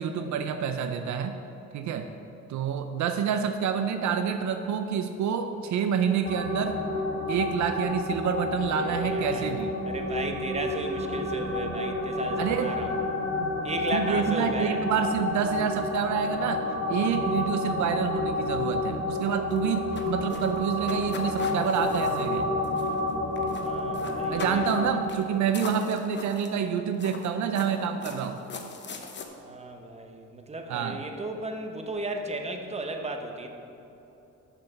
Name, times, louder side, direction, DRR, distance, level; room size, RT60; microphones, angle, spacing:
voice 1, 0.0-1.4 1.7-2.1 2.5-6.8 7.3-9.7 12.4-12.8 13.4-13.5 13.9-22.5 24.3-28.4 30.7-31.0, right 7 dB, 70° right, 7 dB, 0.6 m, -28 dB
sound 1, 6.2-24.9, left 2 dB, 55° left, 2.0 m, -30 dB
voice 2, 8.7-9.5 9.8-13.0 13.6-14.8 23.5-25.0 29.4-33.5, right 2 dB, 20° right, 4 dB, 0.9 m, -35 dB
sound 2, 19.5-23.1 23.4-23.7 23.9-24.8 25.1-25.2 25.5-26.6 27.0-29.3, left 4 dB, 35° left, 0.9 m, -41 dB
6.6 x 6.2 x 6.9 m, 3.0 s
cardioid pair, 90°, 30 cm